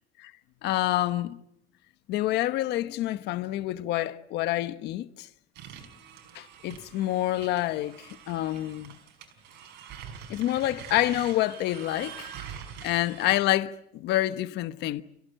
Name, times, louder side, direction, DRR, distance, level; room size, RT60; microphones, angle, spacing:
voice 1, 0.6-1.4 2.1-5.3 6.3-9.0 10.3-12.3 12.8-15.0, left 14 dB, 85° left, 1.2 m, -28 dB
sound 1, 5.5-13.3, right 8 dB, 85° right, 5.7 m, -45 dB
29.0 x 17.0 x 9.2 m
cardioid pair, 110°, 17 cm